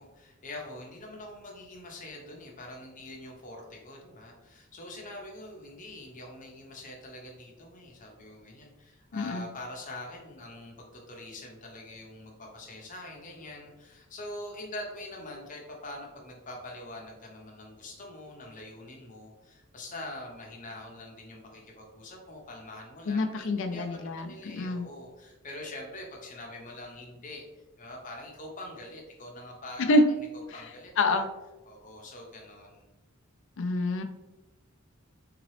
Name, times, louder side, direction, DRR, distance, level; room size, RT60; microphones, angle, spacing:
voice 1, 0.0-30.0 30.5-31.3 31.7-32.9, left 1 dB, 40° left, 0 dB, 0.9 m, -44 dB
voice 2, 9.1-9.4 23.1-24.9 29.9-30.0 31.0-31.3 33.6-34.0, left 2 dB, 65° left, 7 dB, 0.4 m, -26 dB
3.8 x 2.9 x 3.2 m, 1.1 s
head